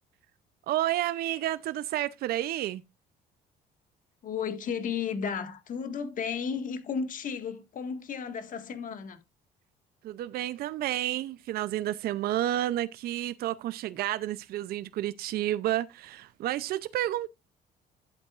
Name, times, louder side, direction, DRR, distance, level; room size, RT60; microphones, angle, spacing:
voice 1, 0.7-2.8 10.0-17.3, right 13 dB, 65° right, 0.6 m, -30 dB
voice 2, 4.2-9.2, left 6 dB, 50° left, 1.7 m, -33 dB
11.5 x 8.3 x 2.4 m
cardioid pair, 110°, 17 cm